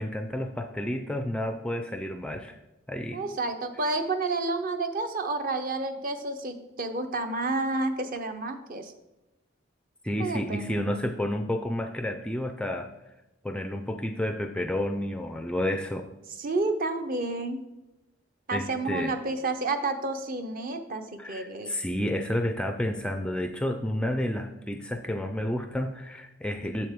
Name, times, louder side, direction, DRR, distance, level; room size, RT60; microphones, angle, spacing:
voice 1, 0.0-2.6 2.9-3.2 10.0-12.9 13.4-16.0 18.5-19.2 21.2-26.9, left 1 dB, 5° left, 6 dB, 0.3 m, -30 dB
voice 2, 3.1-8.9 10.2-10.8 16.4-17.6 18.5-21.8, right 2 dB, 40° right, 7 dB, 0.7 m, -30 dB
7.6 x 7.3 x 3.6 m, 0.98 s
head